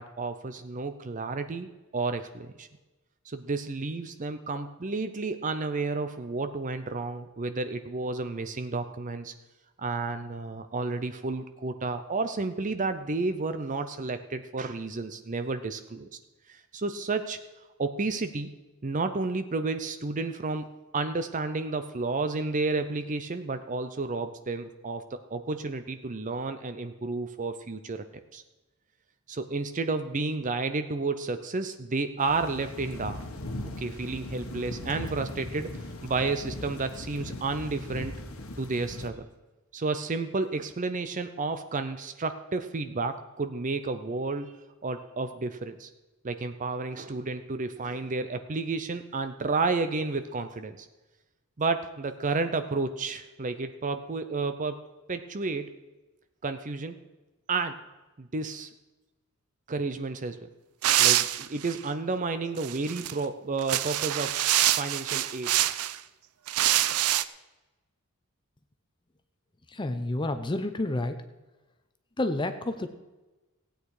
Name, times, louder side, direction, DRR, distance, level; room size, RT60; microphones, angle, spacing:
voice 1, 0.0-2.7 3.3-9.3 9.8-16.1 16.5-17.4 17.8-18.5 18.8-28.0 28.3-28.4 29.3-33.2 33.8-35.7 36.0-38.2 38.6-39.3 39.7-44.5 44.8-45.9 46.2-50.9 51.6-54.8 55.1-55.7 56.4-57.0 57.5-57.8 58.2-58.7 59.7-60.5 61.0-64.4 64.7-65.5, right 3 dB, 35° right, 9 dB, 0.6 m, -31 dB
sound 1, 32.2-39.1, left 1 dB, 65° left, 1.3 m, -39 dB
sound 2, 60.8-61.8 62.6-63.1 63.6-66.0 66.5-67.2, right 13 dB, 90° right, 0.5 m, -25 dB
voice 2, 69.7-71.2 72.2-72.9, left 2 dB, 20° left, 8 dB, 0.7 m, -29 dB
16.5 x 9.0 x 4.8 m, 1.1 s
head